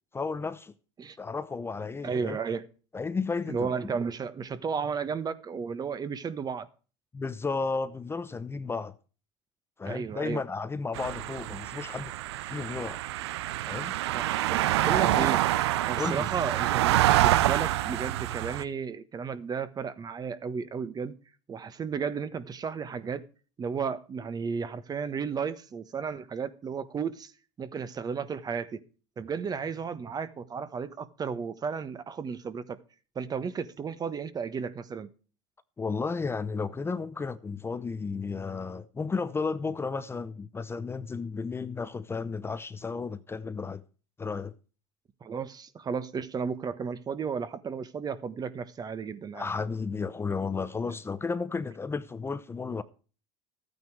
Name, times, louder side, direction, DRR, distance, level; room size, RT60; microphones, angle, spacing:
voice 1, 0.1-0.7 1.2-2.4 2.9-3.7 7.1-8.9 9.8-12.2 12.5-13.0 13.7-13.9 15.1-15.3 16.0-16.3 35.8-43.8 44.2-44.5 49.3-52.8, left 4 dB, 20° left, 0.8 m, -33 dB
voice 2, 2.0-2.7 3.5-6.7 9.8-10.4 14.1-15.4 15.9-21.1 21.5-23.2 23.6-27.3 27.6-28.8 29.2-32.8 33.1-35.1 45.2-49.5, right 6 dB, 30° right, 1.3 m, -33 dB
sound 1, 10.9-18.6, right 14 dB, 90° right, 0.6 m, -26 dB
13.5 x 9.4 x 4.7 m
supercardioid pair, 105°, 14 cm